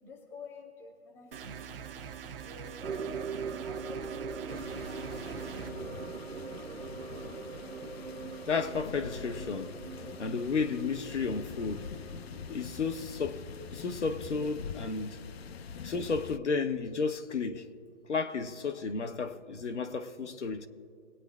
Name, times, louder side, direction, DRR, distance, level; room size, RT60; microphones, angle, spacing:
voice 1, 0.0-1.9 2.4-3.1 3.6-4.2 4.4-5.7, left 3 dB, 5° left, 0.6 m, -50 dB
sound 1, 1.3-5.7, right 7 dB, 50° right, 0.9 m, -44 dB
sound 2, 2.8-15.4 15.6-15.7 16.3-16.4, right 5 dB, 85° right, 1.0 m, -42 dB
sound 3, 4.5-16.4, left 6 dB, 60° left, 0.5 m, -44 dB
voice 2, 8.5-9.8 10.2-11.9 12.5-13.5 13.7-15.2 15.8-17.7 18.1-20.7, left 4 dB, 75° left, 1.0 m, -32 dB
20.5 x 8.9 x 2.4 m
figure-of-eight pair, 140°, 36 cm